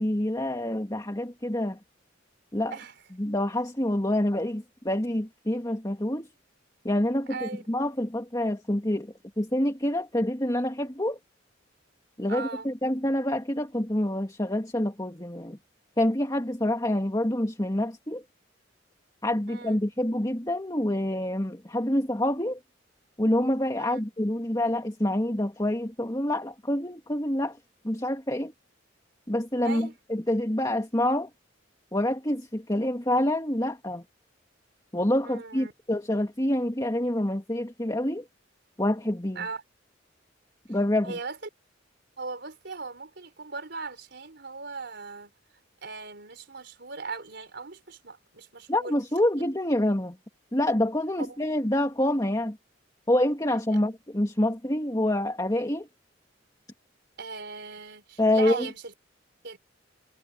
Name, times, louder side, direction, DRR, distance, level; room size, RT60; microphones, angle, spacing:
voice 1, 0.0-1.8 2.5-2.8 3.2-6.3 6.8-11.2 12.2-15.6 16.0-18.2 19.2-22.6 23.2-27.6 27.8-28.5 29.3-31.3 31.9-34.0 34.9-38.2 38.8-39.5 40.7-41.2 48.7-50.2 50.5-52.6 53.1-55.9 58.2-58.7, left 1 dB, 20° left, 2.0 m, -27 dB
voice 2, 7.3-7.6 12.3-12.7 19.5-19.8 23.8-24.0 29.6-29.9 35.2-35.7 39.3-39.6 41.0-41.4 42.2-45.3 45.8-48.9 51.3-51.4 53.7-53.8 57.2-58.9 59.4-59.6, right 4 dB, 60° right, 4.5 m, -38 dB
head